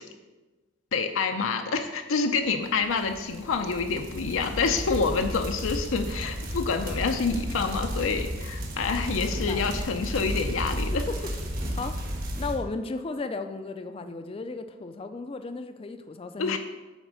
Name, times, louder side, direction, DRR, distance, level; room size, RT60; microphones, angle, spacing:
voice 1, 0.9-11.0 16.4-16.6, left 4 dB, 80° left, 5 dB, 0.5 m, -27 dB
sound 1, 2.7-12.6, equal, 45° right, 1.4 m, -33 dB
voice 2, 9.3-9.7 10.9-11.3 11.8-12.0 12.4-16.6, left 3 dB, 30° left, 8 dB, 0.4 m, -35 dB
8.9 x 3.6 x 6.2 m, 1.2 s
head